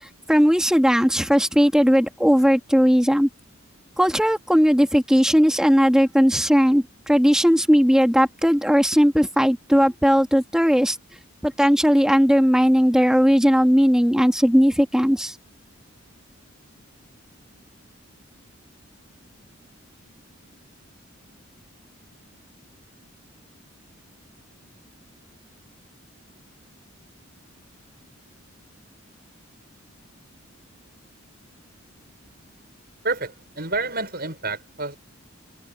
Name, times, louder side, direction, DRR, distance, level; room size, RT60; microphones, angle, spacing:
voice 1, 0.0-3.3 4.0-11.0 11.4-15.4, equal, 5° right, 2.0 m, -18 dB
voice 2, 33.0-35.0, right 3 dB, 45° right, 7.0 m, -28 dB
head